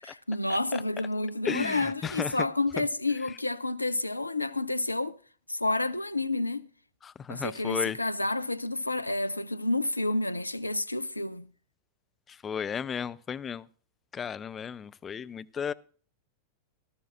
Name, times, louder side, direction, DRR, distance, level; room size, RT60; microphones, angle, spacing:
voice 1, 0.0-5.2 5.5-6.7 7.3-11.5, left 2 dB, 85° left, 0.6 m, -30 dB
voice 2, 1.4-2.4 7.0-8.0 12.3-13.7 14.1-15.7, left 7 dB, 20° left, 0.6 m, -34 dB
18.0 x 13.5 x 2.6 m
figure-of-eight pair, 90°, 0 cm